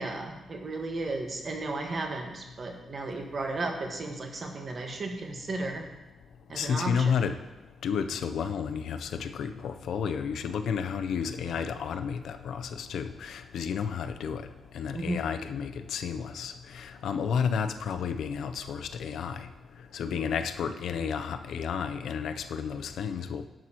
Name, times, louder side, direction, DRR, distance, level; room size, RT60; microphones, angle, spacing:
voice 1, 0.0-5.8 6.5-7.2 14.9-15.2, right 2 dB, 45° right, 3 dB, 1.4 m, -34 dB
voice 2, 6.5-23.5, left 6 dB, 80° left, 9 dB, 0.5 m, -32 dB
11.0 x 7.6 x 2.9 m, 1.1 s
cardioid pair, 95°, 0 cm